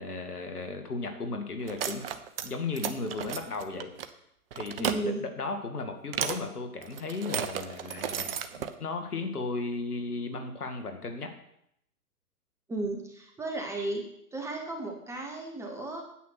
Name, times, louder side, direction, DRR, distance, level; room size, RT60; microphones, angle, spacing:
voice 1, 0.0-2.0 2.4-3.9 4.5-11.3, left 3 dB, 70° left, 6 dB, 2.3 m, -35 dB
sound 1, 1.6-2.5 2.7-4.1 4.5-5.0 6.1-6.4 6.8-8.7, right 9 dB, 40° right, 0.9 m, -33 dB
voice 2, 4.8-5.2 12.7-14.0 14.3-16.0, right 2 dB, 5° right, 1 dB, 1.0 m, -34 dB
9.4 x 8.6 x 6.0 m, 0.75 s
figure-of-eight pair, 125°, 46 cm